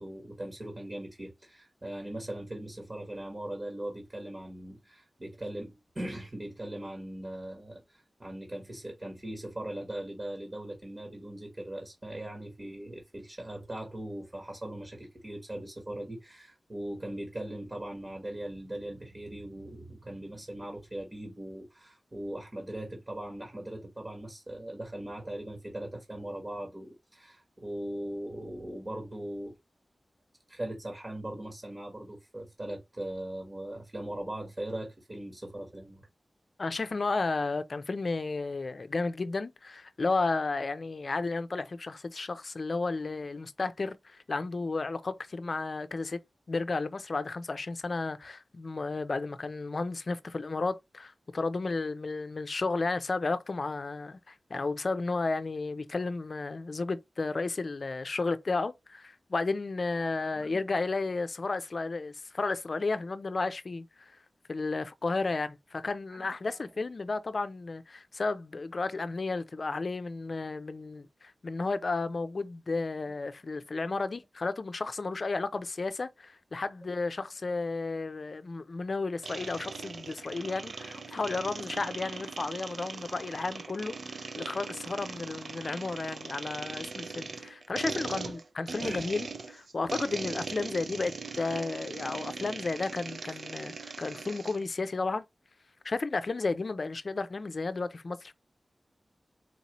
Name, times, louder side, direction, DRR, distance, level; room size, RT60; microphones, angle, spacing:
voice 1, 0.0-29.6 30.5-36.0 60.2-60.6 66.1-66.6 76.8-76.9 88.2-88.3 88.8-89.2 89.8-89.9, right 1 dB, 35° right, 1.5 m, -40 dB
voice 2, 36.6-46.2 46.5-64.2 64.5-95.2 95.8-98.3, left 3 dB, 60° left, 0.5 m, -33 dB
sound 1, 79.2-94.6, right 4 dB, 80° right, 0.5 m, -40 dB
4.5 x 2.8 x 3.0 m
wide cardioid pair, 70°, 0 cm